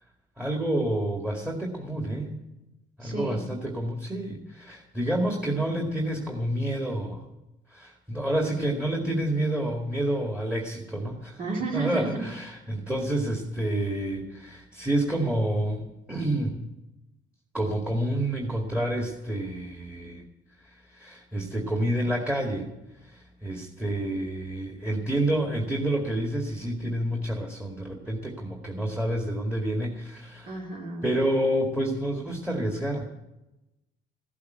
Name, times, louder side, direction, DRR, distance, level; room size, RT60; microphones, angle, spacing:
voice 1, 0.4-2.4 3.0-7.2 7.7-11.4 11.7-16.6 17.5-20.2 20.6-22.7 23.0-30.5 31.0-33.0, right 1 dB, 10° right, 1 dB, 2.1 m, -29 dB
voice 2, 3.0-3.4 11.4-12.3 30.5-31.1, right 4 dB, 50° right, -1 dB, 2.5 m, -32 dB
15.5 x 8.4 x 9.3 m, 0.97 s
cardioid pair, 110°, 17 cm